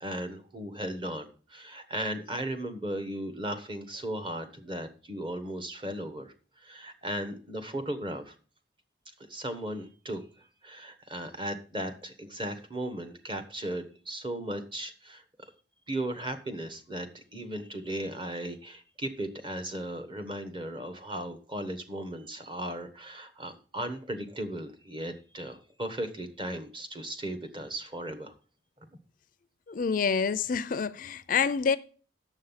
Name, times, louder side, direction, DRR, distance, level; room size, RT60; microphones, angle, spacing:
voice 1, 0.0-6.3 6.6-8.3 9.3-10.2 10.6-15.2 15.9-28.3, right 1 dB, 25° right, 1.2 m, -36 dB
voice 2, 29.7-31.8, left 6 dB, 45° left, 0.4 m, -27 dB
8.8 x 7.1 x 5.6 m
head